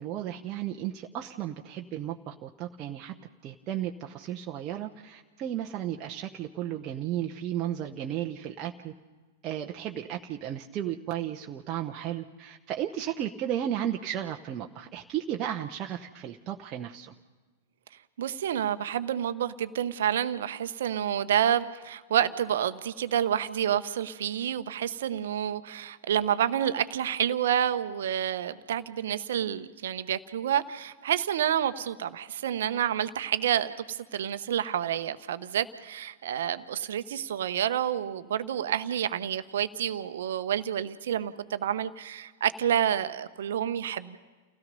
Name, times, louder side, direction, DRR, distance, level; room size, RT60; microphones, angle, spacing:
voice 1, 0.0-3.1 3.4-8.9 9.4-17.1, right 11 dB, 35° right, 1 dB, 0.9 m, -34 dB
voice 2, 18.2-44.2, right 10 dB, 60° right, 12 dB, 1.0 m, -29 dB
29.5 x 16.5 x 5.4 m, 1.4 s
figure-of-eight pair, 95°, 0 cm